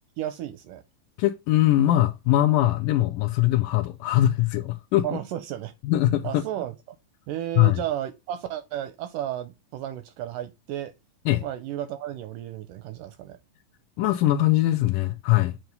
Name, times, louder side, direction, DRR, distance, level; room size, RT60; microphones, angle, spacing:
voice 1, 0.2-0.8 5.0-5.7 6.2-6.7 7.3-10.9 11.4-13.4, right 12 dB, 80° right, 1.9 m, -33 dB
voice 2, 1.2-5.2 5.8-6.4 7.6-7.8 11.3-11.4 14.0-15.6, left 14 dB, 80° left, 2.0 m, -21 dB
7.8 x 2.9 x 5.2 m
omnidirectional pair, 4.1 m